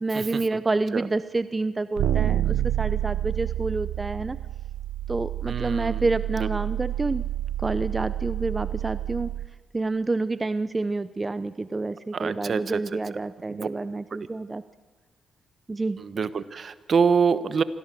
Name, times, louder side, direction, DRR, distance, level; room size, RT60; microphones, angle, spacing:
voice 1, 0.0-4.4 5.1-7.2 7.6-9.3 9.7-14.6 15.7-16.0, right 3 dB, 25° right, 14 dB, 0.7 m, -28 dB
sound 1, 2.0-9.5, right 12 dB, 80° right, 0.8 m, -28 dB
voice 2, 5.5-6.0 6.4-6.5 12.1-12.8 13.5-13.7 16.0-17.6, right 6 dB, 55° right, 14 dB, 1.1 m, -25 dB
25.5 x 16.0 x 7.6 m, 1.3 s
supercardioid pair, 60°, 0 cm